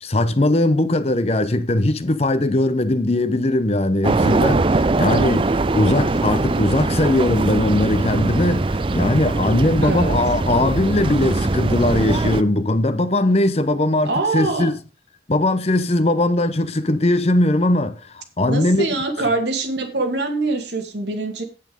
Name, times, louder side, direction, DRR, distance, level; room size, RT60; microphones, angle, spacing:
voice 1, 0.0-14.7 15.3-18.9, left 1 dB, 35° left, 0.8 m, -20 dB
sound 1, 4.0-12.4, right 3 dB, 30° right, 0.4 m, -21 dB
voice 2, 9.8-10.2 14.0-14.7 18.4-21.4, right 3 dB, 75° right, 2.4 m, -24 dB
8.9 x 8.4 x 5.3 m
head